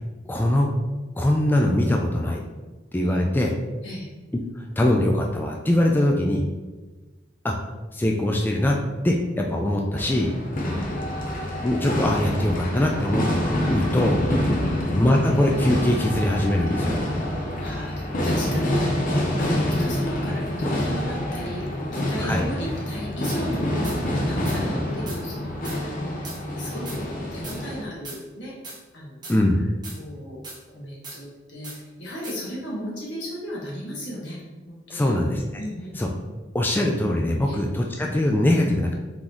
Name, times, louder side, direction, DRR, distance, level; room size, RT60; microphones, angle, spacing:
voice 1, 0.3-0.7 1.2-2.4 2.9-3.5 4.6-6.4 7.4-7.6 7.9-8.8 9.0-10.3 11.6-13.3 13.7-14.2 14.9-17.0 22.2-22.5 29.3-29.6 34.9-35.4 36.0-36.1 36.5-38.9, left 1 dB, 10° left, 1 dB, 0.3 m, -22 dB
sound 1, 10.0-27.8, left 1 dB, 50° left, 0.7 m, -26 dB
voice 2, 10.6-10.9 14.6-14.8 17.6-18.9 19.4-26.2 26.6-28.5 28.9-29.2 30.0-30.4 30.7-35.1 35.6-35.9 37.4-37.6, equal, 80° left, -5 dB, 1.4 m, -35 dB
sound 2, 23.2-23.4 23.8-24.0 24.4-24.6 25.1-25.2 25.6-25.8 26.2-26.4 26.8-27.0 27.4-27.6 28.0-28.2 28.6-28.8 29.2-29.4 29.8-30.0 30.4-30.6 31.0-31.2 31.6-31.8 32.2-32.4, right 2 dB, 25° right, 1.1 m, -38 dB
3.8 x 3.8 x 3.0 m, 1.2 s
head